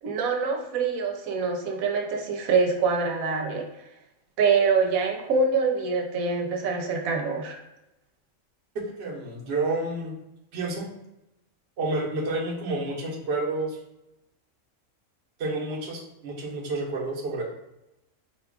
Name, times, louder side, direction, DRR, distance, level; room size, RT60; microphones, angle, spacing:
voice 1, 0.0-3.7 4.4-7.6, right 4 dB, 90° right, 2 dB, 1.1 m, -25 dB
voice 2, 8.7-10.2 10.5-10.9 11.8-13.8 15.4-17.4, right 2 dB, 55° right, -2 dB, 1.0 m, -29 dB
4.5 x 2.3 x 3.5 m, 0.90 s
omnidirectional pair, 1.4 m